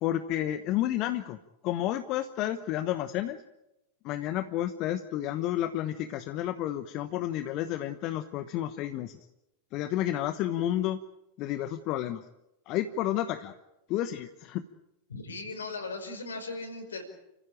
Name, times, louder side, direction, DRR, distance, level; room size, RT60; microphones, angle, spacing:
voice 1, 0.0-1.4 1.6-3.4 4.0-9.2 9.7-11.0 11.4-12.2 12.7-13.6 13.9-14.6, left 12 dB, 40° left, 11 dB, 1.0 m, -31 dB
voice 2, 15.1-17.0, left 3 dB, 70° left, 6 dB, 5.1 m, -38 dB
30.0 x 15.5 x 8.8 m, 0.91 s
figure-of-eight pair, 90°, 0 cm